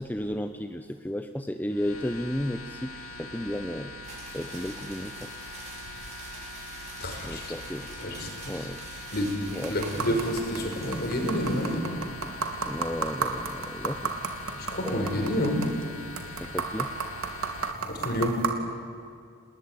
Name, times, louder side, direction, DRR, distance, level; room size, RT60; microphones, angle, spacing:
voice 1, 0.0-3.9 4.3-5.3 7.2-7.9 8.5-8.8 9.5-9.7 12.7-14.1 14.4-15.2 16.4-16.9, left 1 dB, 10° left, 7 dB, 0.9 m, -33 dB
sound 1, 1.7-17.7, left 2 dB, 80° left, 2.1 m, -42 dB
sound 2, 4.0-11.7, right 3 dB, 30° right, 8.0 m, -46 dB
voice 2, 7.0-7.5 8.0-8.7 9.1-9.3 9.7-11.9 14.6-15.6 17.8-18.4, equal, 50° left, 3 dB, 5.8 m, -29 dB
sound 3, 9.5-18.5, right 4 dB, 70° right, 2.8 m, -34 dB
29.5 x 20.0 x 9.6 m, 2.3 s
head